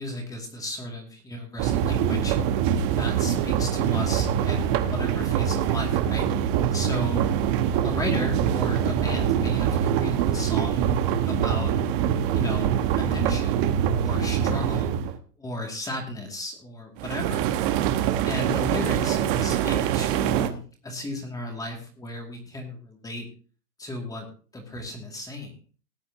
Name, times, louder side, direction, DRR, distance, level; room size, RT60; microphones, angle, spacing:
voice 1, 0.0-2.4 2.8-7.2 7.8-10.8 11.3-11.8 12.3-13.7 14.0-14.9 15.4-17.5 18.2-23.3 23.8-24.3 24.5-25.6, left 1 dB, 5° left, 2 dB, 2.3 m, -34 dB
sound 1, 1.6-15.2 17.0-20.5, right 9 dB, 30° right, 1.1 m, -24 dB
19.0 x 8.5 x 2.8 m, 0.39 s
hypercardioid pair, 140°, 48 cm